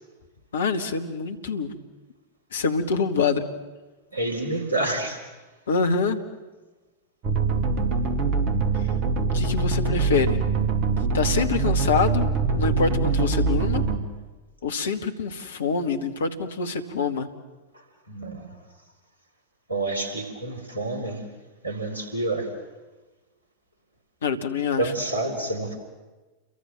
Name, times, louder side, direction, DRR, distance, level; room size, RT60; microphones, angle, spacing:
voice 1, 0.5-1.7 2.5-3.4 5.7-6.2 9.3-10.4 11.1-12.3 12.6-13.8 14.6-17.3 24.2-24.9, left 5 dB, 65° left, 8 dB, 2.1 m, -25 dB
voice 2, 4.1-5.3 17.7-18.6 19.7-21.2 21.6-22.5 24.8-25.8, right 2 dB, 90° left, 5 dB, 4.0 m, -28 dB
sound 1, 7.2-14.0, right 4 dB, 40° right, 2.7 m, -23 dB
29.5 x 23.0 x 7.5 m, 1.2 s
figure-of-eight pair, 90°, 0 cm